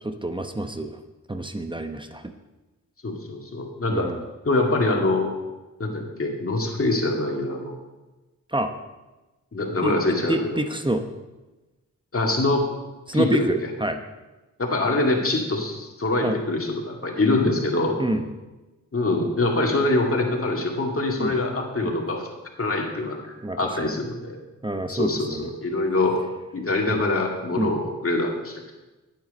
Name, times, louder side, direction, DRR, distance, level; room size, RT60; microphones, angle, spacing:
voice 1, 0.0-1.0 1.3-2.3 3.9-4.2 8.5-8.7 9.8-10.0 10.3-11.0 13.1-14.0 16.2-16.4 18.0-18.3 21.2-21.4 21.8-21.9 23.4-23.9 24.6-25.5 26.9-27.0 27.6-27.8, right 1 dB, 15° right, 7 dB, 0.8 m, -27 dB
voice 2, 3.0-4.1 4.4-5.3 5.8-7.8 9.5-10.4 12.1-12.7 13.1-13.3 14.6-18.0 18.9-22.3 22.6-24.4 24.9-26.2 26.5-28.8, left 2 dB, 45° left, 1 dB, 2.2 m, -24 dB
9.3 x 9.1 x 5.4 m, 1.1 s
cardioid pair, 60°, 31 cm